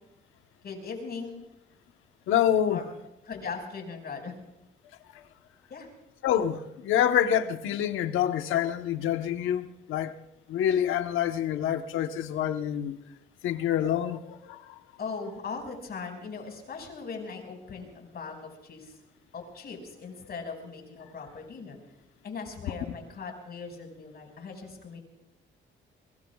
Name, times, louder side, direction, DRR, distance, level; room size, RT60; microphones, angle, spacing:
voice 1, 0.6-1.4 2.7-2.8 3.3-4.3 5.7-5.9 15.0-19.0 19.3-21.8 22.2-25.0, left 5 dB, 55° left, 3 dB, 5.7 m, -39 dB
voice 2, 2.3-2.8 6.2-10.1 10.5-13.0 13.4-14.8, left 10 dB, 90° left, 8 dB, 1.1 m, -27 dB
24.5 x 23.0 x 2.4 m, 0.90 s
cardioid pair, 90°, 20 cm